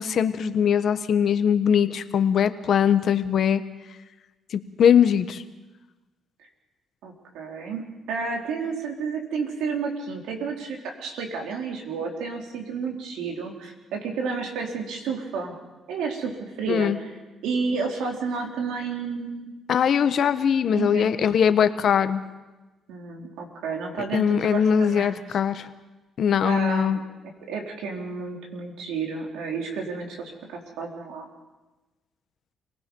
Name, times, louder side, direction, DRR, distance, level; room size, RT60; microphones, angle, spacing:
voice 1, 0.0-3.6 4.5-5.4 16.7-17.0 19.7-22.2 24.1-25.7 26.2-27.0, left 8 dB, 60° left, 10 dB, 1.3 m, -21 dB
voice 2, 7.0-15.5 15.9-16.9 17.4-19.5 20.7-21.1 22.9-25.2 26.4-27.0 27.5-31.3, right 5 dB, 90° right, 1 dB, 4.0 m, -31 dB
28.5 x 19.0 x 5.5 m, 1.1 s
cardioid pair, 90°, 0 cm